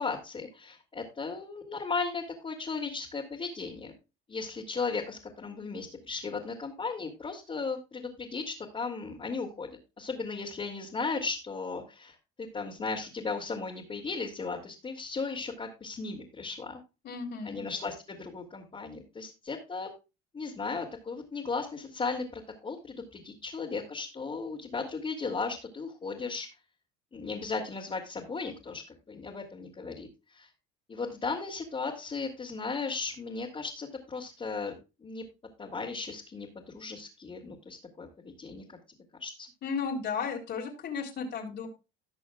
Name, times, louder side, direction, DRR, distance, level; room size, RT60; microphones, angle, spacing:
voice 1, 0.0-3.9 4.3-9.7 10.0-16.8 17.4-19.9 20.3-26.5 27.1-30.5 30.9-35.2 35.6-38.8 39.2-39.5, left 4 dB, 25° left, -4 dB, 3.0 m, -36 dB
voice 2, 17.0-17.6 39.6-41.7, left 5 dB, 55° left, -1 dB, 3.8 m, -34 dB
18.5 x 6.2 x 2.4 m, 0.28 s
supercardioid pair, 95°, 21 cm